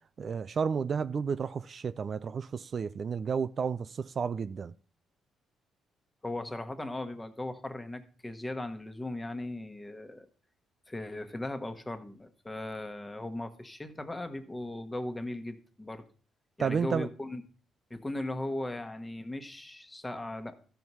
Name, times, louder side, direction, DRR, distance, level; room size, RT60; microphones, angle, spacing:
voice 1, 0.2-4.7 16.6-17.1, right 6 dB, 45° right, 0.4 m, -31 dB
voice 2, 6.2-10.3 10.9-16.0 16.6-17.4 17.9-20.6, left 1 dB, 15° left, 1.2 m, -38 dB
13.5 x 4.7 x 5.5 m
cardioid pair, 90°, 0 cm